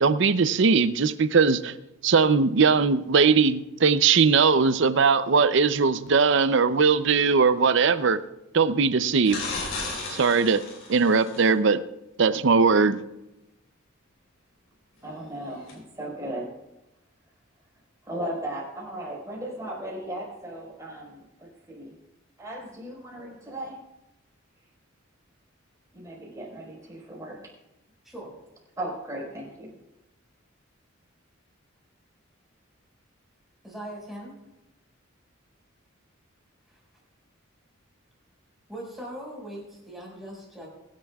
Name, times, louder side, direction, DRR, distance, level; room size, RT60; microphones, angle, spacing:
voice 1, 0.0-1.7 2.0-8.2 8.5-9.4 10.1-10.6 10.9-11.8 12.2-13.0, right 5 dB, 60° right, 13 dB, 0.6 m, -20 dB
sound 1, 9.2-11.5 15.7-15.8, left 3 dB, 70° left, 5.4 m, -34 dB
voice 2, 15.0-16.5 18.0-21.9 22.4-23.8 25.9-27.4 28.8-29.7, right 1 dB, 15° right, -3 dB, 4.5 m, -36 dB
voice 3, 33.6-34.3 36.7-36.8 38.7-40.7, right 1 dB, ahead, -3 dB, 5.3 m, -40 dB
24.5 x 10.5 x 2.4 m, 0.93 s
head